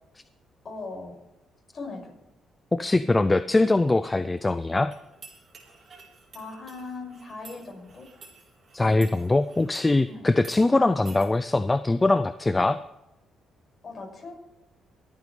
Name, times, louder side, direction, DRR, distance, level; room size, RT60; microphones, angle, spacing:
voice 1, 0.6-1.2 1.7-2.2 6.3-8.1 10.1-10.3 13.8-14.3, left 3 dB, 40° left, 0 dB, 5.9 m, -39 dB
voice 2, 2.7-4.9 8.7-12.8, left 2 dB, 20° left, 13 dB, 0.4 m, -22 dB
sound 1, 4.9-9.9 10.4-10.6 11.1-11.3, right 4 dB, 45° right, 3.9 m, -50 dB
23.0 x 9.2 x 3.3 m, 0.95 s
cardioid pair, 90°, 0 cm